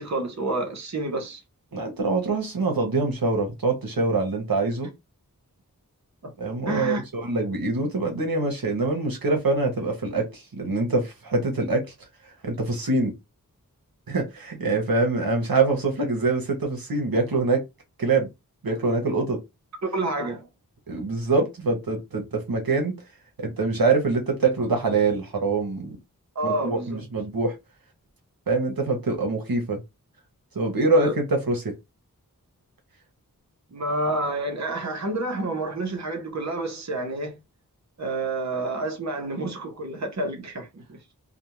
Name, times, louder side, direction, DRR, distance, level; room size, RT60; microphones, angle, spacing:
voice 1, 0.0-1.4 6.7-7.0 19.9-20.5 26.4-27.0 30.9-31.1 33.7-37.4 38.0-41.1, right 2 dB, 50° right, 0.8 m, -29 dB
voice 2, 1.7-4.9 6.4-11.9 12.4-13.1 14.1-17.6 18.0-18.3 18.6-19.4 20.9-22.9 23.4-26.0 26.4-27.5 28.5-29.8 30.5-31.7, right 3 dB, 80° right, 0.9 m, -24 dB
2.5 x 2.2 x 2.9 m
wide cardioid pair, 40°, 35 cm